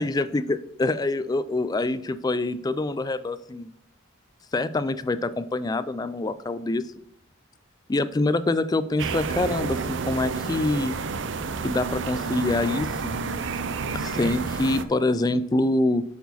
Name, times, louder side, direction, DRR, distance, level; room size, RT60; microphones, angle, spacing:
voice 1, 0.0-3.7 4.5-6.9 7.9-11.0 11.6-13.1 13.9-16.0, left 2 dB, 20° left, 14 dB, 0.3 m, -25 dB
sound 1, 9.0-14.8, right 4 dB, 65° right, 0.5 m, -30 dB
8.2 x 4.7 x 4.0 m, 0.70 s
head